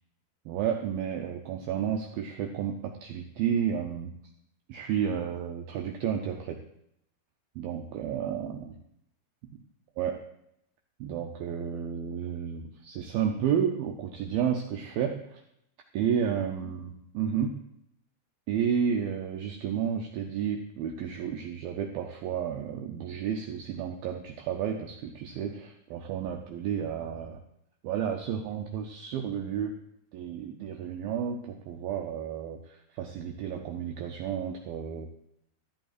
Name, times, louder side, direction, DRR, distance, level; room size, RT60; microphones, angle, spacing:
voice 1, 0.5-4.1 4.7-6.6 7.6-8.8 10.0-10.2 11.0-15.4 15.9-17.6 18.5-27.4 27.8-29.8 30.1-35.1, right 8 dB, 85° right, 2 dB, 2.1 m, -31 dB
13.5 x 11.5 x 2.5 m, 0.77 s
omnidirectional pair, 5.0 m